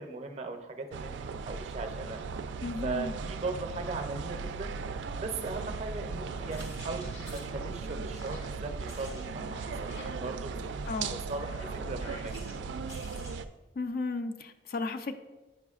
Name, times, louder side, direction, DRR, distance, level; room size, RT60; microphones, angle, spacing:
voice 1, 0.0-2.2 2.8-4.8 5.1-12.6, right 3 dB, 40° right, 5 dB, 0.5 m, -39 dB
sound 1, 0.9-13.5, right 5 dB, 90° right, 0.3 m, -37 dB
voice 2, 2.6-3.1 10.8-11.2 13.8-15.1, left 3 dB, 55° left, 9 dB, 0.4 m, -34 dB
sound 2, 6.1-13.4, equal, 75° left, 1.7 m, -48 dB
8.9 x 4.9 x 2.4 m, 1.2 s
head